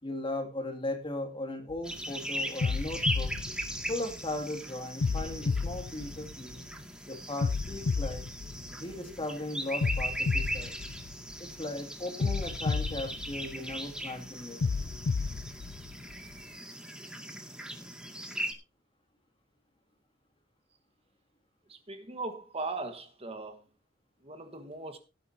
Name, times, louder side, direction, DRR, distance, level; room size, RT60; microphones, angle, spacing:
voice 1, 0.0-3.4 3.9-6.6 7.1-8.2 8.7-10.8 11.4-14.6, left 1 dB, 25° left, 2.4 m, -37 dB
sound 1, 1.7-2.0 2.6-4.4 5.0-6.8 7.4-9.2 9.8-11.6 12.2-14.0 14.6-16.4, left 4 dB, 75° left, 0.5 m, -32 dB
sound 2, 1.8-18.5, equal, 5° right, 2.1 m, -39 dB
voice 2, 21.7-23.6 24.2-25.0, right 3 dB, 30° right, 1.4 m, -39 dB
18.0 x 10.0 x 2.8 m
head